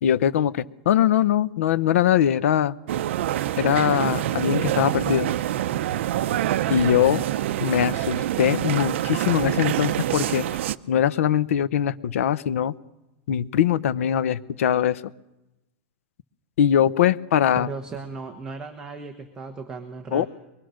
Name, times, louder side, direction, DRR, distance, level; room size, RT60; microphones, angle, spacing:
voice 1, 0.0-2.8 3.6-5.3 6.7-7.2 7.6-10.4 10.9-12.8 13.3-15.0 16.6-17.7 20.1-20.3, left 10 dB, 90° left, 16 dB, 0.9 m, -21 dB
sound 1, 2.9-10.8, right 12 dB, 65° right, 0.7 m, -26 dB
voice 2, 17.5-20.3, right 4 dB, 10° right, 2 dB, 1.2 m, -36 dB
23.5 x 21.5 x 6.4 m, 0.96 s
supercardioid pair, 175°, 7 cm